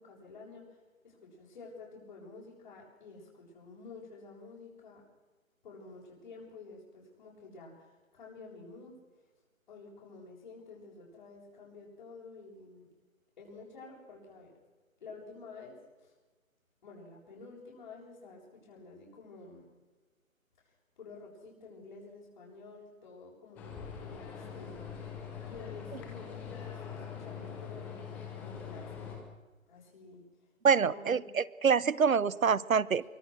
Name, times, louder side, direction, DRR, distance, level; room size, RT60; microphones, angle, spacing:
voice 1, 0.0-5.0 5.6-8.9 9.7-12.9 13.4-14.6 15.0-16.1 16.8-19.7 20.6-23.7 24.0-24.9 25.4-29.3 29.7-30.2 30.8-31.3, left 3 dB, 40° left, -7 dB, 7.5 m, -50 dB
sound 1, 23.6-29.2, left 7 dB, 5° left, 1.1 m, -43 dB
voice 2, 30.6-33.0, right 6 dB, 75° right, 20 dB, 1.3 m, -26 dB
24.0 x 24.0 x 6.3 m, 1.2 s
hypercardioid pair, 165°, 41 cm